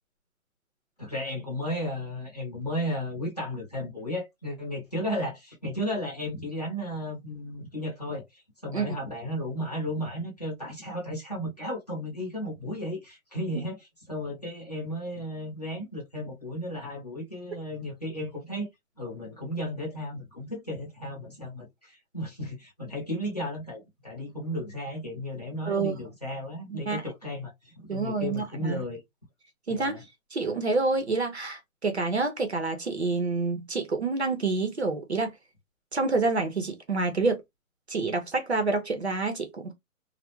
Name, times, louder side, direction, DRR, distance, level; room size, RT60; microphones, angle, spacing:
voice 1, 1.0-13.8 14.1-18.7 19.0-29.0 29.7-30.0, equal, 30° left, 0.7 m, -34 dB
voice 2, 26.7-27.0 27.9-28.8 29.7-30.0 30.3-35.3 35.9-37.4 37.9-39.7, right 3 dB, 50° right, 0.6 m, -28 dB
2.2 x 2.0 x 2.9 m
hypercardioid pair, 180°, 43 cm